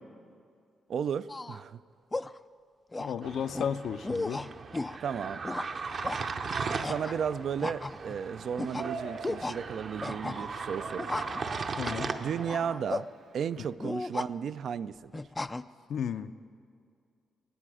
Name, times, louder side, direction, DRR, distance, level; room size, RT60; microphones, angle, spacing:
voice 1, 0.9-1.8 5.0-5.4 6.8-11.3 12.2-13.1 13.3-15.2, right 7 dB, 60° right, 14 dB, 0.4 m, -34 dB
sound 1, 1.3-1.6 2.1-2.4 2.9-3.2 3.5-3.7 4.0-5.0 5.4-5.7 6.0-6.2 6.8-7.2 7.6-8.2 8.6-8.9 9.2-9.6 10.0-10.6 11.0-11.4 11.8-12.0 12.5-13.0 13.8-14.3 15.1-15.6, left 2 dB, 20° left, 0.3 m, -35 dB
voice 2, 3.0-4.5 11.7-12.2 15.9-16.3, left 8 dB, 70° left, 11 dB, 0.5 m, -33 dB
sound 2, 3.2-12.5, right 4 dB, 45° right, 0.8 m, -38 dB
Yell, 6.0-13.7, right 4 dB, 80° right, 1.2 m, -45 dB
24.0 x 9.8 x 4.9 m, 2.3 s
cardioid pair, 110°, 0 cm